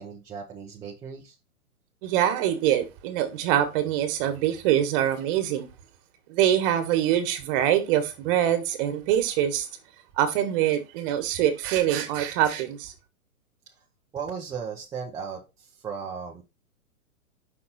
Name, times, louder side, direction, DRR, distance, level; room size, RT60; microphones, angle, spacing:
voice 1, 0.0-1.4 14.1-16.4, right 6 dB, 10° right, 0.5 m, -36 dB
voice 2, 2.0-5.7 6.3-9.7 10.2-12.9, right 11 dB, 35° right, 1.5 m, -24 dB
5.5 x 4.1 x 4.1 m
hypercardioid pair, 125°, 44 cm